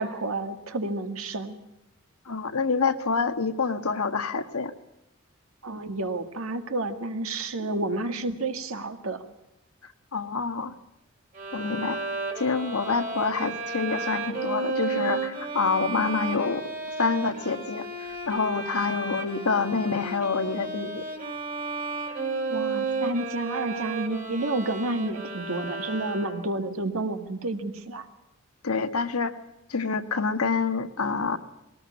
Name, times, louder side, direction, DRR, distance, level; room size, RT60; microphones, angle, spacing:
voice 1, 0.0-1.6 5.6-9.2 22.5-28.1, right 2 dB, 80° right, 7 dB, 2.0 m, -30 dB
voice 2, 2.2-4.7 10.1-10.7 11.5-12.0 12.4-16.6 17.0-17.9 18.3-21.0 28.6-29.3 29.7-31.4, left 4 dB, 90° left, 8 dB, 1.5 m, -27 dB
Bowed string instrument, 11.3-26.6, right 3 dB, 35° right, 2.5 m, -33 dB
21.0 x 18.5 x 8.3 m, 0.86 s
head